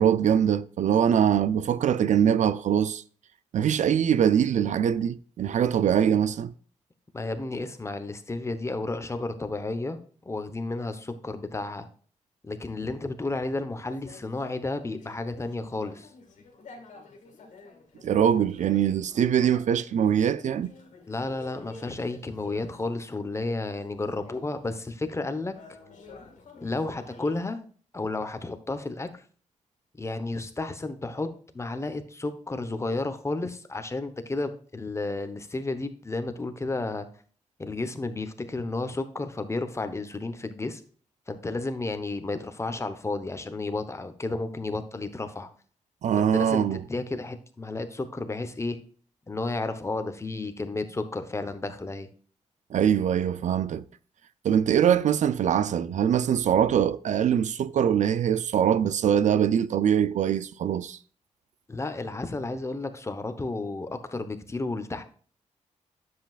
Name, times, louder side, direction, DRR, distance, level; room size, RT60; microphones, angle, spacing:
voice 1, 0.0-3.0 3.5-6.5 18.0-20.7 46.0-46.8 52.7-53.8 54.4-61.0, right 9 dB, 70° right, 0.5 m, -23 dB
voice 2, 7.1-10.0 10.2-11.9 12.4-16.1 21.1-25.5 26.6-27.6 27.9-29.2 30.0-37.1 37.6-40.8 41.3-45.5 46.2-48.8 49.3-52.1 61.7-65.0, left 2 dB, 20° left, 1.0 m, -32 dB
sound 1, 13.9-23.0 23.4-27.4, left 3 dB, 75° left, 2.2 m, -51 dB
10.0 x 7.8 x 2.4 m
cardioid pair, 110°, 13 cm